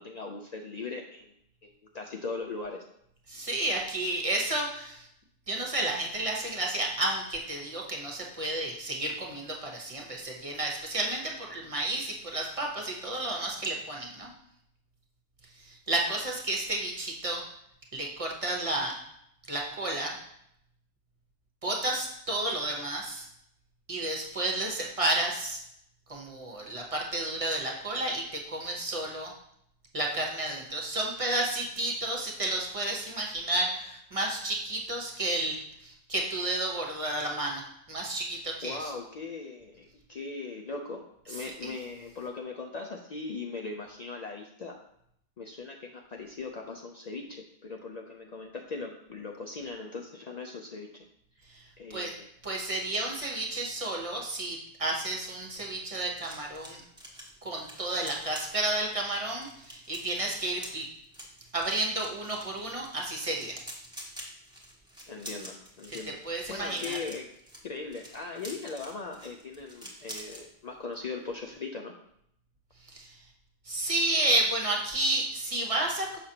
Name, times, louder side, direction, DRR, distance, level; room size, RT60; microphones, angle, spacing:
voice 1, 0.0-1.3 1.6-2.8 38.6-44.8 45.4-51.0 51.8-52.3 65.1-66.2 66.5-67.3 67.6-71.9, left 4 dB, 50° left, 2 dB, 0.5 m, -39 dB
voice 2, 3.3-5.1 5.5-14.3 15.5-17.4 17.9-19.0 19.5-20.1 21.6-23.3 23.9-25.6 26.1-29.3 29.9-38.9 41.3-41.7 51.5-51.6 51.9-52.1 52.4-56.8 57.4-60.9 61.5-63.6 65.9-66.0 66.2-67.0 72.9-73.2 73.6-76.2, right 2 dB, 35° right, 0 dB, 1.0 m, -31 dB
sound 1, 55.4-70.4 70.8-71.0 71.3-71.6, equal, 5° right, 1.2 m, -47 dB
6.6 x 5.8 x 2.8 m, 0.73 s
omnidirectional pair, 1.1 m